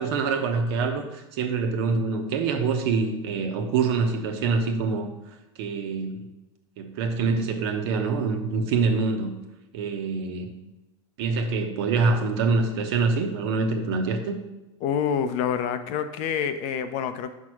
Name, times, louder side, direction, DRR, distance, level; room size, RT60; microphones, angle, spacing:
voice 1, 0.0-5.1 5.6-6.3 6.8-9.3 9.7-10.5 11.2-14.4, right 4 dB, 65° right, 5 dB, 1.2 m, -25 dB
voice 2, 14.8-17.3, left 8 dB, 50° left, 10 dB, 0.7 m, -27 dB
6.0 x 4.7 x 6.2 m, 1.0 s
hypercardioid pair, 95°, 15 cm